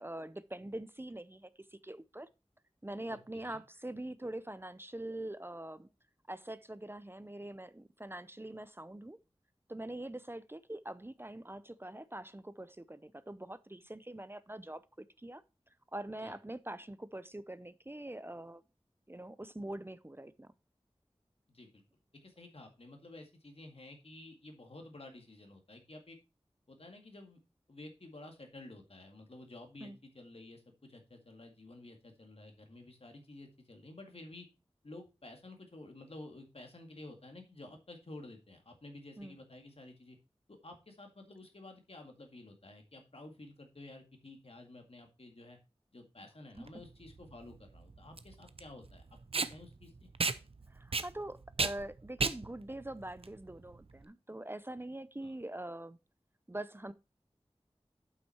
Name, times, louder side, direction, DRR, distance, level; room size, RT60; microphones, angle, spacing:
voice 1, 0.0-2.3 2.8-5.9 6.3-9.2 9.7-15.4 15.9-18.6 19.1-20.5 29.8-30.0 39.2-39.4 50.7-56.0 56.5-56.9, right 1 dB, 20° right, 0.5 m, -44 dB
voice 2, 3.1-3.6 16.2-16.3 21.5-21.8 22.2-26.2 26.7-27.4 27.7-34.5 34.8-40.2 40.5-45.6 45.9-50.1 55.2-55.3, left 2 dB, 65° left, 2.0 m, -52 dB
Packing tape duct tape, 46.6-54.0, right 4 dB, 65° right, 0.6 m, -36 dB
8.0 x 5.9 x 4.4 m
wide cardioid pair, 45°, 11 cm